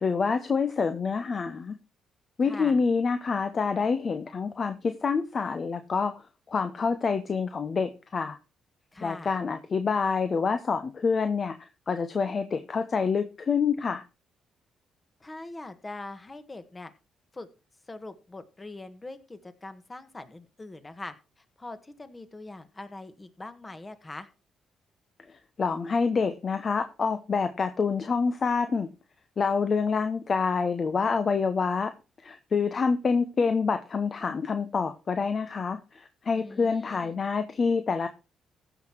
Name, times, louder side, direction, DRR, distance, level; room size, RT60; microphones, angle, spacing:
voice 1, 0.0-1.8 2.4-8.4 9.0-11.6 11.9-14.0 25.3-28.9 29.4-31.9 32.2-38.1, left 5 dB, 40° left, 9 dB, 1.0 m, -27 dB
voice 2, 2.4-2.8 8.9-9.3 15.2-16.9 17.3-17.5 17.9-24.3 36.3-37.2, left 2 dB, 20° left, 10 dB, 1.6 m, -42 dB
15.0 x 6.1 x 4.6 m, 0.31 s
cardioid pair, 90°, 0 cm